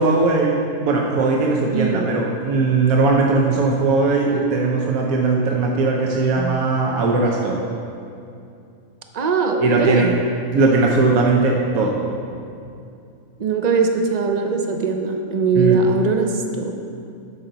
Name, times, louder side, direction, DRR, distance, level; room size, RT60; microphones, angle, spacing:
voice 1, 0.0-7.6 9.6-10.1 10.5-12.0 15.5-15.8, right 3 dB, 80° right, -1 dB, 1.2 m, -19 dB
voice 2, 1.7-2.1 6.4-6.5 9.1-10.1 13.4-16.7, right 4 dB, 60° right, 4 dB, 0.4 m, -20 dB
12.0 x 5.6 x 3.9 m, 2.5 s
omnidirectional pair, 1.5 m